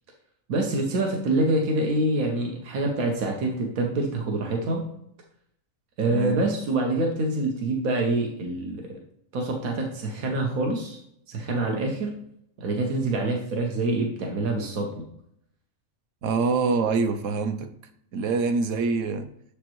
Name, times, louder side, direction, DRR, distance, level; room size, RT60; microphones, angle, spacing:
voice 1, 0.5-4.8 6.0-8.8 9.3-11.0 11.3-12.1 12.6-15.0, right 2 dB, 90° right, 1.3 m, -26 dB
voice 2, 6.0-6.4 16.2-17.7 18.1-19.3, right 4 dB, 70° right, 0.9 m, -25 dB
7.1 x 5.1 x 3.0 m
omnidirectional pair, 1.4 m